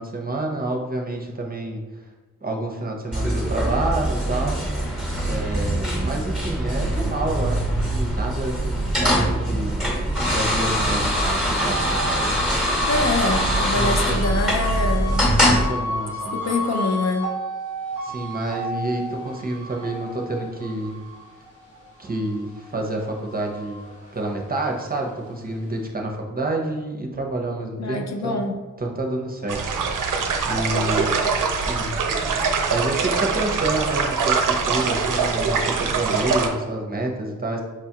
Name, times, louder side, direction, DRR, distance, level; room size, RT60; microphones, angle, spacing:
voice 1, 0.0-1.8 2.4-4.6 5.2-9.8 10.2-12.4 13.7-14.2 15.5-16.4 18.0-21.0 22.0-23.9 24.1-28.4 28.8-29.6 29.9-31.3 31.5-31.9 32.7-37.6, right 2 dB, 30° right, 1 dB, 0.6 m, -28 dB
sound 1, 3.1-15.6, equal, ahead, 1.0 m, -23 dB
sound 2, 10.1-22.8 23.2-24.9, equal, 80° left, 1.4 m, -32 dB
voice 2, 12.9-15.4 16.3-17.3 27.8-28.5, left 3 dB, 55° left, 3 dB, 0.5 m, -25 dB
sound 3, 29.5-36.5, right 5 dB, 85° right, 0.5 m, -23 dB
4.7 x 2.3 x 2.8 m, 1.3 s
cardioid pair, 55°, 31 cm